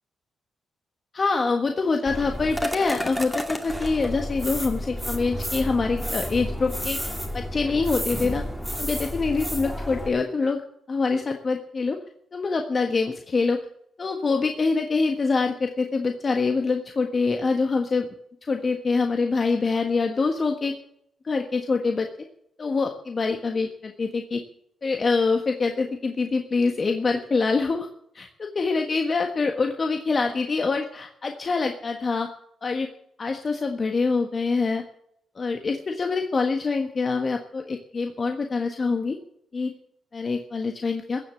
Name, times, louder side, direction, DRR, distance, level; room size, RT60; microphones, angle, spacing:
voice 1, 1.1-8.4 8.8-10.6 10.9-12.0 12.3-13.6 14.0-18.1 18.5-20.7 21.2-22.1 22.6-24.4 24.8-27.9 28.1-32.3 32.6-32.9 33.2-34.8 35.3-39.2 39.5-39.7 40.1-41.2, left 4 dB, 45° left, 4 dB, 1.5 m, -25 dB
sound 1, 2.1-10.1, equal, ahead, 2.3 m, -31 dB
15.5 x 7.5 x 8.4 m, 0.72 s
supercardioid pair, 60°, 0 cm